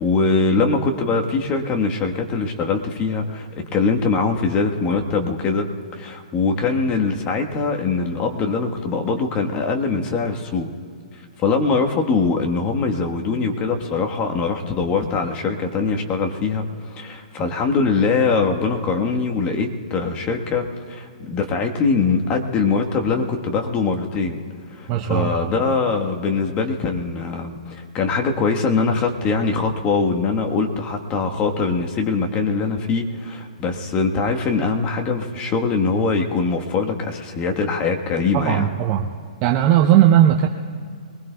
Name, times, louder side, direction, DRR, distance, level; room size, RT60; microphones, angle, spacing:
voice 1, 0.0-5.7 5.9-10.7 11.4-24.4 24.7-38.7, left 4 dB, 25° left, 3 dB, 1.4 m, -22 dB
voice 2, 24.9-25.5 38.3-39.1 39.4-40.5, right 11 dB, 35° right, 3 dB, 0.7 m, -17 dB
22.5 x 20.0 x 2.3 m, 2.2 s
hypercardioid pair, 130°, 4 cm